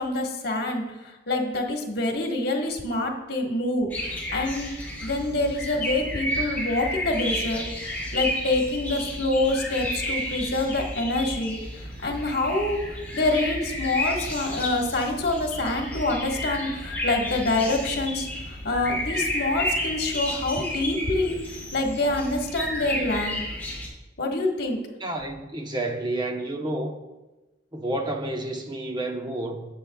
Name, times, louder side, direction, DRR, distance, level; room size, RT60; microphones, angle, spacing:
voice 1, 0.0-4.7 5.0-7.6 8.1-12.8 13.1-23.4 24.2-24.8, left 2 dB, 60° left, 1.5 m, -26 dB
sound 1, 3.9-23.9, left 1 dB, 10° left, 2.3 m, -32 dB
voice 2, 25.0-27.0 27.7-29.7, right 1 dB, 25° right, 0.9 m, -30 dB
18.0 x 7.3 x 2.3 m
head